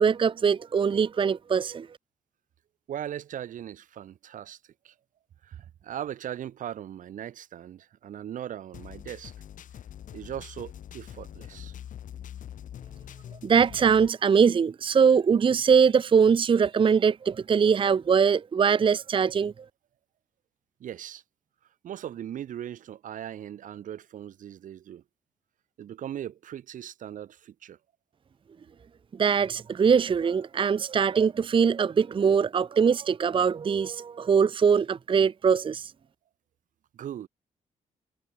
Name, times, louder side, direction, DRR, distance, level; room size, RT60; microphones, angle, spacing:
voice 1, 0.0-1.9 13.4-19.5 29.1-35.9, right 6 dB, 40° right, 0.6 m, -22 dB
voice 2, 2.9-4.6 4.8-4.9 5.4-9.3 10.1-11.7 20.8-21.2 21.8-25.0 25.8-27.8 36.9-37.3, right 10 dB, 75° right, 1.1 m, -39 dB
sound 1, 8.7-14.1, left 10 dB, 75° left, 3.5 m, -44 dB
cardioid pair, 70°, 14 cm